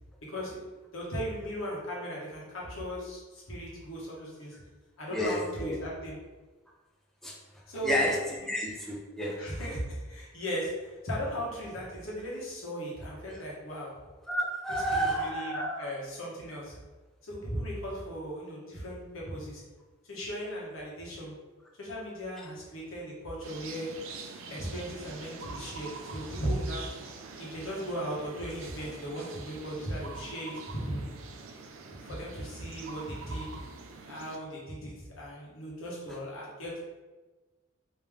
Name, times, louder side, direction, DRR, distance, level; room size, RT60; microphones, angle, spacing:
voice 1, 0.3-4.6 5.0-6.2 7.7-8.0 8.4-8.5 9.4-13.9 14.7-16.8 17.2-19.6 20.0-21.3 21.8-23.9 24.5-26.9 27.4-31.1 32.0-33.5 34.0-36.8, equal, 75° left, -4 dB, 1.2 m, -37 dB
voice 2, 5.1-5.8 7.2-7.4 7.8-8.2 8.5-9.4 14.3-15.9, equal, ahead, -2 dB, 0.4 m, -30 dB
sound 1, 23.4-34.4, right 4 dB, 75° right, 0.4 m, -45 dB
3.2 x 2.9 x 3.5 m, 1.2 s
head